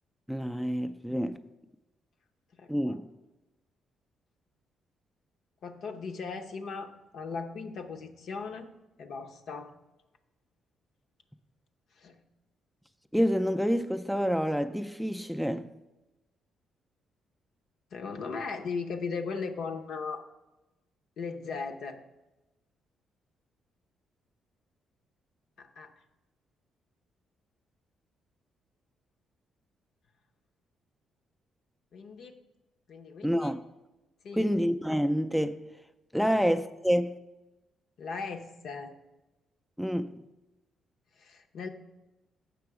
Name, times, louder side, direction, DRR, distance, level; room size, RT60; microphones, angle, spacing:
voice 1, 0.3-1.4 2.7-3.1 13.1-15.7 33.2-33.6 34.3-35.6 36.1-37.2 39.8-40.2, equal, ahead, 0.3 m, -28 dB
voice 2, 2.5-3.0 5.6-8.7 9.0-9.7 12.0-12.2 17.9-20.3 21.2-22.0 25.6-25.9 31.9-32.4 32.9-33.5 34.2-34.5 36.2-36.4 38.0-38.9 41.2-41.7, left 4 dB, 70° left, 0.7 m, -38 dB
6.9 x 5.9 x 4.7 m
cardioid pair, 90°, 0 cm